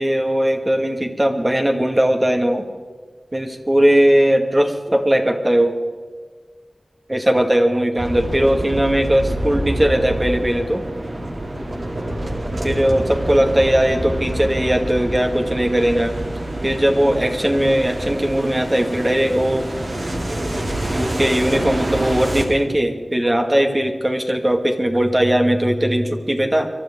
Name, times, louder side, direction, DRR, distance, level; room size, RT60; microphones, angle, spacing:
voice 1, 0.0-2.7 3.3-5.8 7.1-10.8 12.6-16.2 16.6-19.7 20.9-26.7, equal, 25° right, 3 dB, 2.0 m, -18 dB
sound 1, 8.0-22.5, right 1 dB, 55° right, 2.7 m, -26 dB
24.0 x 13.0 x 3.8 m, 1.5 s
wide cardioid pair, 60°, 0 cm